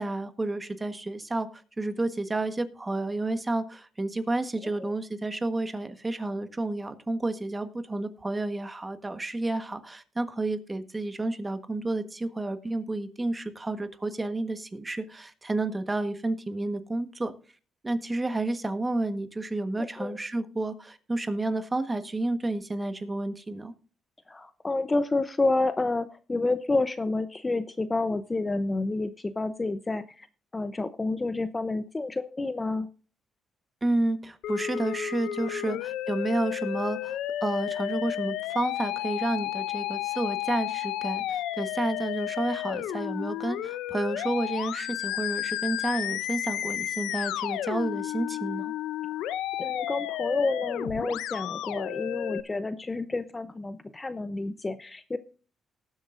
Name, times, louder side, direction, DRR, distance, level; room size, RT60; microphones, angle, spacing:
voice 1, 0.0-17.3 17.8-23.7 33.8-48.7, right 2 dB, 20° right, 9 dB, 1.4 m, -30 dB
voice 2, 19.8-20.2 24.3-30.3 30.5-32.9 35.4-35.8 49.6-55.2, left 2 dB, 20° left, 12 dB, 0.7 m, -29 dB
Musical instrument, 34.4-52.4, left 12 dB, 90° left, 0.6 m, -32 dB
19.0 x 7.8 x 2.6 m, 0.39 s
cardioid pair, 90°, 0 cm